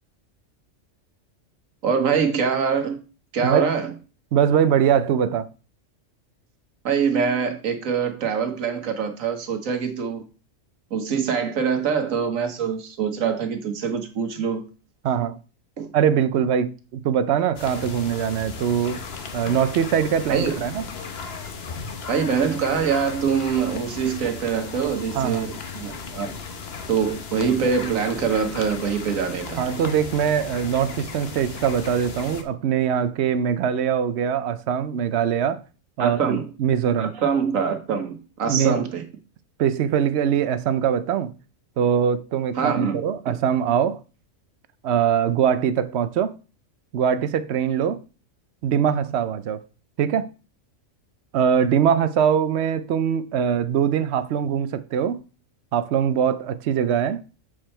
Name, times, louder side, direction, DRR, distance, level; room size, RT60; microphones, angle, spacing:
voice 1, 1.8-3.0 3.3-3.9 6.8-10.2 10.9-14.6 15.8-15.9 20.3-20.6 22.1-26.3 26.9-29.6 36.0-36.5 37.0-39.0 42.5-43.0, right 6 dB, 85° right, 1.5 m, -24 dB
voice 2, 4.3-5.5 15.0-15.4 15.9-19.0 19.3-20.8 25.1-25.5 29.6-35.6 36.0-37.1 38.5-38.8 39.6-41.3 41.8-44.0 44.8-46.4 46.9-48.0 48.6-49.6 50.0-50.3 51.3-55.2 55.7-57.2, right 8 dB, 65° right, 0.8 m, -22 dB
sound 1, 17.6-32.4, left 5 dB, 55° left, 1.1 m, -36 dB
7.4 x 4.8 x 4.3 m
omnidirectional pair, 1.4 m